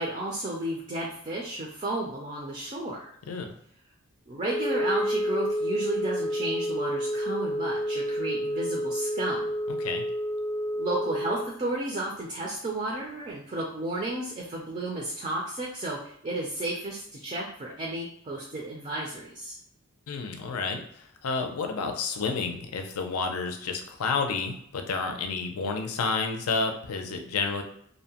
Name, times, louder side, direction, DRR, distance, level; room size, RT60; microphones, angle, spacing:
voice 1, 0.0-3.1 4.3-9.5 10.8-19.6, right 1 dB, 30° right, -2 dB, 0.4 m, -33 dB
Wind instrument woodwind instrument, 4.4-11.5, equal, 35° left, 0.6 m, -29 dB
voice 2, 9.7-10.0 20.1-27.6, left 4 dB, 85° left, 5 dB, 0.5 m, -30 dB
2.6 x 2.1 x 2.8 m, 0.67 s
head